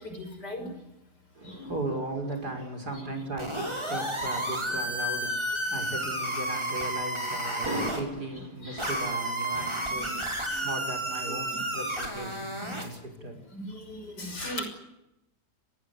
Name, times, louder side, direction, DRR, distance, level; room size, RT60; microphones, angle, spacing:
voice 1, 1.3-13.4, right 2 dB, 75° right, 5 dB, 6.4 m, -36 dB
sound 1, 3.4-8.0 8.8-13.0, right 1 dB, 15° right, 5.7 m, -31 dB
voice 2, 14.2-14.6, left 1 dB, 85° left, 6 dB, 6.7 m, -34 dB
26.5 x 19.5 x 9.7 m, 0.87 s
omnidirectional pair, 1.7 m